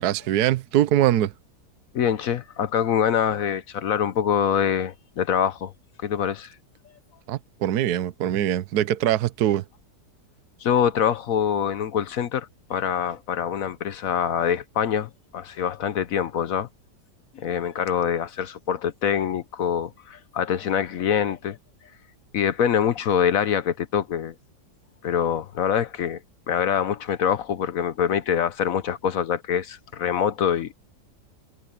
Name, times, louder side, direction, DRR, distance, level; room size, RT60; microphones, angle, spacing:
voice 1, 0.0-1.3 7.3-9.6, right 12 dB, 70° right, 1.3 m, -22 dB
voice 2, 1.9-5.7 6.0-6.5 10.6-16.7 17.3-21.6 22.3-24.3 25.0-26.2 26.5-30.7, left 8 dB, 60° left, 1.1 m, -24 dB
omnidirectional pair, 1.8 m